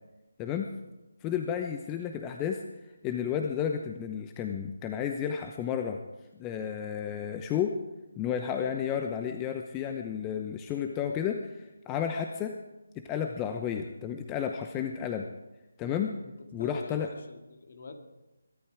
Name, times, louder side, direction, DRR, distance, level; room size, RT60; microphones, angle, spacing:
voice 1, 1.2-2.6 3.0-6.0 6.4-7.8 8.2-12.6 12.9-15.3 15.8-16.1 16.5-17.1, left 8 dB, 15° left, 5 dB, 0.8 m, -32 dB
voice 2, 16.2-18.1, left 3 dB, 50° left, 5 dB, 2.4 m, -45 dB
22.5 x 12.5 x 4.9 m, 1.0 s
figure-of-eight pair, 155°, 0 cm